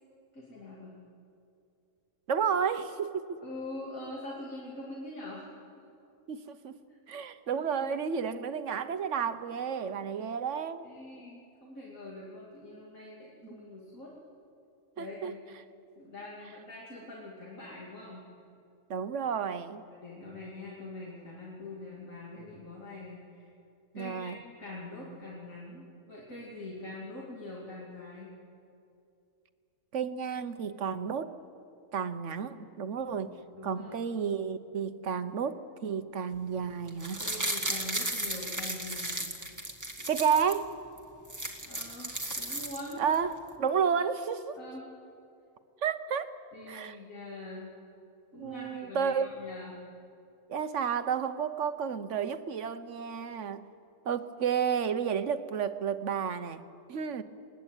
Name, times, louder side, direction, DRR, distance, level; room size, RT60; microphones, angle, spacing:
voice 1, 0.3-1.0 3.4-5.6 7.5-7.7 10.8-14.1 15.0-15.4 16.0-18.3 19.9-23.5 23.9-28.3 33.1-34.0 37.2-39.2 41.6-43.0 44.6-44.9 46.5-47.7 48.3-49.8, left 2 dB, 80° left, -5 dB, 3.3 m, -44 dB
voice 2, 2.3-3.4 6.3-6.7 7.1-10.9 13.5-13.6 15.0-15.3 18.9-19.8 23.9-24.4 29.9-31.4 31.9-33.4 33.6-37.2 40.1-40.7 43.0-44.6 45.8-46.3 46.7-47.0 48.3-49.3 50.5-53.7 54.0-56.6 56.9-57.2, right 7 dB, 65° right, 11 dB, 1.3 m, -31 dB
sound 1, 36.9-40.6 41.0-41.1 41.2-43.1 43.5-43.6, right 1 dB, 15° right, 1.8 m, -35 dB
21.5 x 20.5 x 9.1 m, 2.6 s
omnidirectional pair, 1.4 m